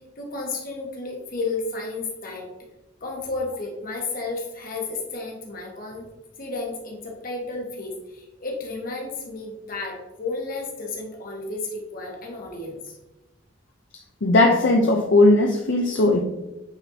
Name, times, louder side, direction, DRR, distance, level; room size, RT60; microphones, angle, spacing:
voice 1, 0.2-2.5 3.0-6.1 6.4-13.0, left 3 dB, 45° left, -1 dB, 1.4 m, -32 dB
voice 2, 14.2-16.2, left 2 dB, 65° left, 1 dB, 0.6 m, -17 dB
8.8 x 4.2 x 2.8 m, 1.0 s
head